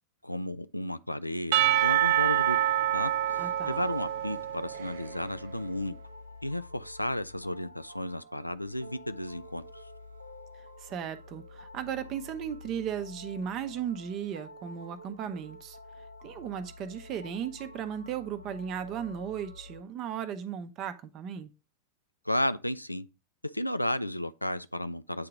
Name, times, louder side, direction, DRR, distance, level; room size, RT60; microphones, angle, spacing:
voice 1, 0.2-2.6 2.9-5.9 6.4-9.6 22.3-23.1 23.5-25.3, left 1 dB, 85° left, 0.3 m, -33 dB
Percussion / Church bell, 1.5-5.2, right 12 dB, 55° right, 0.3 m, -26 dB
sound 1, 1.5-19.8, left 1 dB, 90° right, 0.6 m, -49 dB
voice 2, 3.4-3.8 10.8-15.8 16.2-21.5, right 8 dB, 35° right, 0.7 m, -36 dB
8.5 x 2.9 x 4.7 m
figure-of-eight pair, 90°, 0 cm